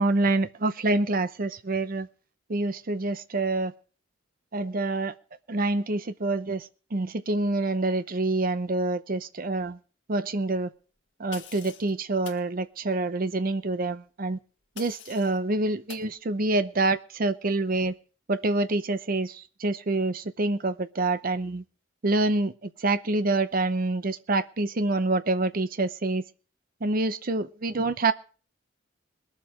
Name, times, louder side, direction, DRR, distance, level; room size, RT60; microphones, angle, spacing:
voice 1, 0.0-2.1 2.5-3.7 4.5-5.1 5.5-9.8 10.1-10.7 11.2-14.4 14.8-17.9 18.3-21.6 22.0-26.2 26.8-28.1, right 2 dB, 45° right, 0.7 m, -26 dB
sound 1, 11.3-11.9 12.2-12.5 14.8-15.4 15.9-16.1, left 8 dB, 65° left, 1.9 m, -44 dB
21.5 x 7.3 x 4.9 m
head